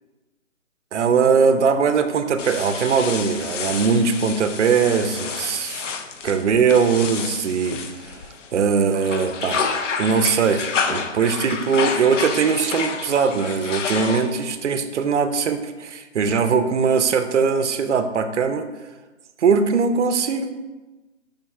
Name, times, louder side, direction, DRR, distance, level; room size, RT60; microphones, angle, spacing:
voice 1, 0.9-5.9 6.2-8.2 8.5-9.6 10.0-18.7 19.4-20.5, right 5 dB, 70° right, 9 dB, 0.5 m, -20 dB
sound 1, 2.4-8.6 8.9-14.5, left 5 dB, 75° left, 0.5 m, -29 dB
5.1 x 2.1 x 4.6 m, 1.2 s
hypercardioid pair, 175°, 37 cm